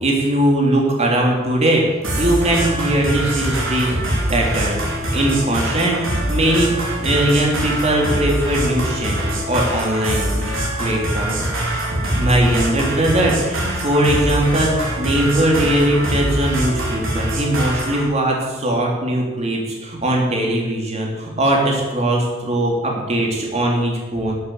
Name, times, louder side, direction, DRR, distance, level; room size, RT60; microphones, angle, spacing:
voice 1, 0.0-1.8 2.2-4.0 4.3-4.8 5.1-6.0 6.3-6.7 7.0-10.5 10.8-11.3 12.1-24.3, right 1 dB, 35° right, -1 dB, 3.2 m, -20 dB
sound 1, 2.0-18.0, right 1 dB, 85° right, 4.6 m, -23 dB
13.0 x 8.0 x 8.0 m, 1.2 s
head